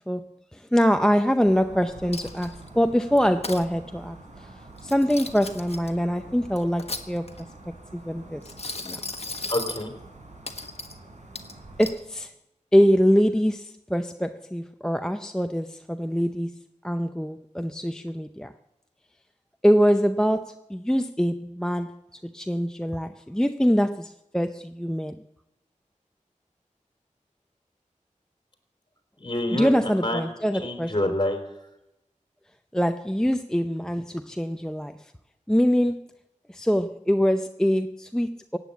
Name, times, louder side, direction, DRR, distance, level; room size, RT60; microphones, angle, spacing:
voice 1, 0.0-4.5 4.8-7.3 7.9-8.5 8.8-9.0 11.8-12.3 12.7-16.6 16.8-18.5 19.6-25.2 29.6-30.9 32.7-35.1 35.5-36.1 36.5-38.6, equal, 5° left, 0.6 m, -24 dB
sound 1, 1.4-12.0, right 2 dB, 60° right, 4.0 m, -46 dB
Coin (dropping), 2.1-2.7 3.2-3.6 4.8-5.9 6.6-7.5 8.4-9.9 10.5-11.0 11.3-12.0, left 3 dB, 50° left, 1.3 m, -36 dB
voice 2, 9.5-9.9 29.2-30.3 30.5-31.7, left 1 dB, 35° left, 3.6 m, -28 dB
16.5 x 9.2 x 8.4 m
wide cardioid pair, 55°, 13 cm